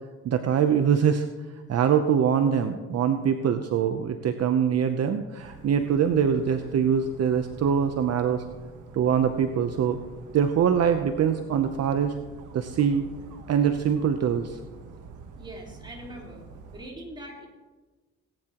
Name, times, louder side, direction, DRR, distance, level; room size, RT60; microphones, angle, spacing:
voice 1, 0.2-1.3 1.7-8.4 8.9-10.0 10.3-12.1 12.5-13.0 13.5-14.6, right 7 dB, 55° right, 8 dB, 0.8 m, -23 dB
Dog, 5.4-16.9, right 4 dB, 80° right, 1.3 m, -46 dB
voice 2, 15.4-16.5 16.7-17.5, right 1 dB, 15° right, -3 dB, 3.8 m, -42 dB
18.5 x 9.9 x 3.0 m, 1.3 s
cardioid pair, 90°, 30 cm